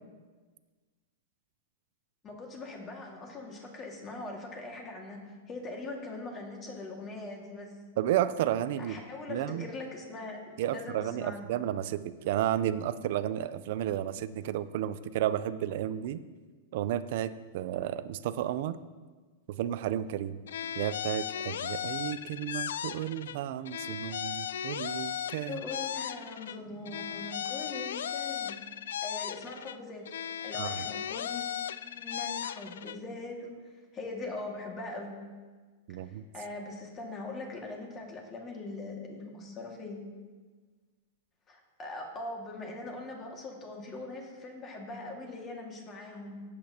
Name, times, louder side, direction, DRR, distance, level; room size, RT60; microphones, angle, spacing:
voice 1, 2.2-5.2 5.5-7.7 8.8-11.5 25.5-28.6 29.0-30.1 30.4-31.5 31.9-35.2 36.0-40.0 41.5-46.4, left 2 dB, 20° left, 0 dB, 1.9 m, -41 dB
voice 2, 8.0-9.0 9.3-9.7 10.6-16.2 16.7-18.8 19.5-20.4 20.7-25.6 30.5-30.9 35.9-36.2, right 11 dB, 55° right, 14 dB, 0.5 m, -32 dB
sound 1, 20.5-23.4 23.6-26.6 26.8-29.8 30.0-33.0, left 9 dB, 85° left, 0.3 m, -36 dB
17.0 x 8.5 x 2.9 m, 1.4 s
supercardioid pair, 155°, 0 cm